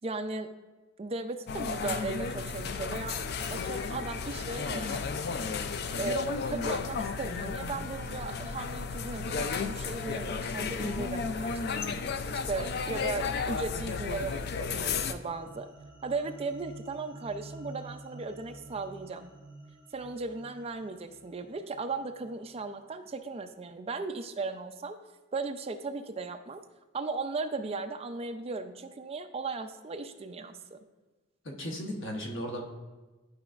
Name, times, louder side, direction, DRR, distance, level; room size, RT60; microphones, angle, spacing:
voice 1, 0.0-0.5 1.0-3.2 3.5-5.0 5.9-11.9 12.3-15.7 16.0-19.3 19.9-25.0 25.3-26.6 26.9-30.8, right 3 dB, 30° right, 7 dB, 0.4 m, -37 dB
sound 1, 1.5-15.1, left 5 dB, 55° left, 0.4 m, -33 dB
sound 2, 14.8-22.8, right 2 dB, 10° right, 1.9 m, -50 dB
voice 2, 31.4-32.6, equal, 80° left, 1 dB, 1.1 m, -36 dB
11.5 x 4.8 x 2.4 m, 1.2 s
head